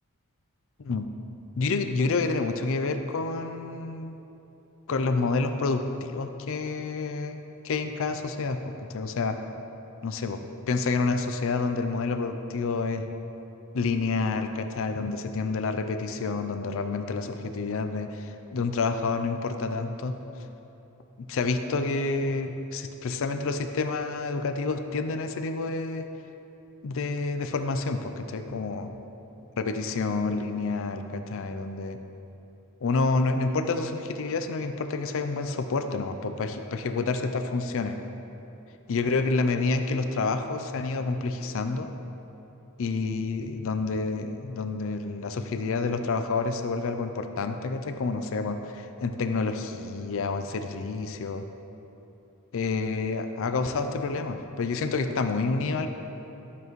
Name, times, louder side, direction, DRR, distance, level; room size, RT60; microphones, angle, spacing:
voice 1, 1.6-4.1 4.9-7.4 7.6-9.4 10.0-10.4 10.7-13.1 13.7-20.2 21.2-26.0 26.8-28.9 29.6-32.0 32.8-38.0 38.9-41.9 42.8-51.4 52.5-55.9, left 3 dB, 65° left, 8 dB, 0.5 m, -28 dB
12.5 x 7.0 x 3.1 m, 3.0 s
head